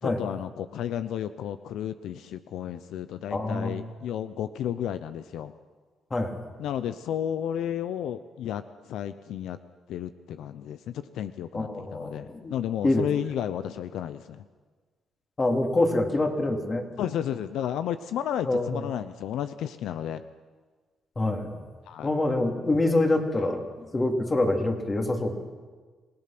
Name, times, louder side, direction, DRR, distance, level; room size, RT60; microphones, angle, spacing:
voice 1, 0.0-5.5 6.6-9.6 9.9-14.4 17.0-20.2 21.9-22.1, left 10 dB, 80° left, 11 dB, 0.7 m, -32 dB
voice 2, 3.3-3.8 6.1-6.4 11.5-12.5 12.8-13.0 15.4-16.9 18.5-18.8 21.2-21.7 22.0-25.3, left 2 dB, 30° left, 3 dB, 3.2 m, -26 dB
27.5 x 18.0 x 6.1 m, 1.4 s
cardioid pair, 90°, 0 cm